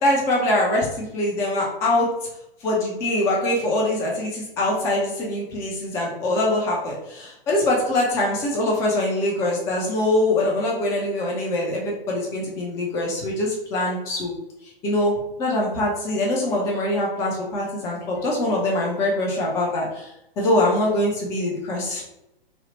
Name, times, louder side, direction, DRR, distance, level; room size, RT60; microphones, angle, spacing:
voice 1, 0.0-2.1 2.6-14.3 14.8-20.1 20.4-22.0, left 1 dB, 10° left, -3 dB, 0.3 m, -23 dB
3.1 x 2.0 x 2.8 m, 0.86 s
figure-of-eight pair, 110°, 29 cm